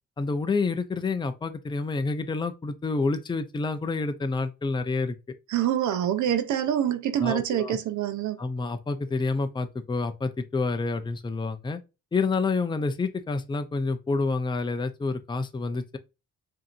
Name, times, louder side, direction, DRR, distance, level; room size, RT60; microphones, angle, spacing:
voice 1, 0.2-5.2 7.2-7.8 8.4-11.8 12.1-16.0, left 3 dB, 15° left, 0.6 m, -28 dB
voice 2, 5.5-8.4, right 10 dB, 75° right, 0.7 m, -26 dB
5.0 x 2.8 x 2.5 m
cardioid pair, 90°, 30 cm